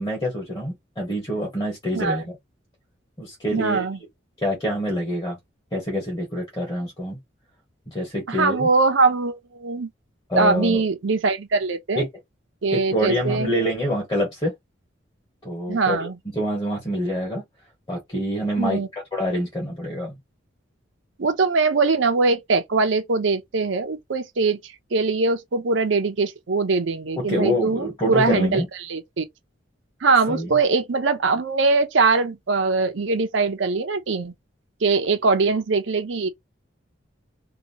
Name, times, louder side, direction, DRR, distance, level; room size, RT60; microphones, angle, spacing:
voice 1, 0.0-2.4 3.2-3.8 4.4-5.4 5.7-7.2 7.9-8.7 10.3-10.8 11.9-12.1 12.7-14.5 15.4-16.1 16.3-17.4 17.9-18.8 19.1-20.2 27.2-28.7 30.3-30.5, equal, 20° left, 1.3 m, -26 dB
voice 2, 3.5-4.0 8.3-9.9 10.3-12.0 12.6-13.5 15.7-16.2 18.6-18.9 21.2-24.6 24.9-28.6 28.9-29.2 30.0-34.3 34.8-36.3, right 4 dB, 75° right, 0.6 m, -22 dB
2.8 x 2.3 x 2.8 m
head